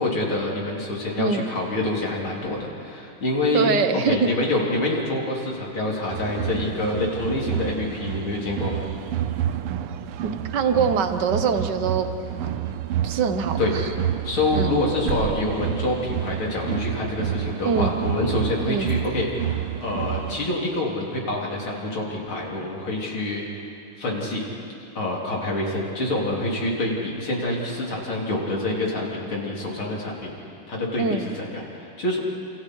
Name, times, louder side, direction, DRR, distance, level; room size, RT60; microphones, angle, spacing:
voice 1, 0.0-3.7 4.0-8.8 13.6-13.7 14.2-23.7 24.0-24.4 25.0-30.3 30.7-32.2, left 2 dB, 65° left, -3 dB, 4.5 m, -26 dB
voice 2, 3.5-4.3 10.2-12.7 13.0-13.8 14.5-14.7 17.6-17.9 18.6-18.9 31.0-31.3, right 5 dB, 55° right, 8 dB, 1.7 m, -24 dB
sound 1, 6.1-20.5, right 11 dB, 85° right, 1.8 m, -29 dB
28.5 x 28.5 x 4.8 m, 2.7 s
omnidirectional pair, 2.4 m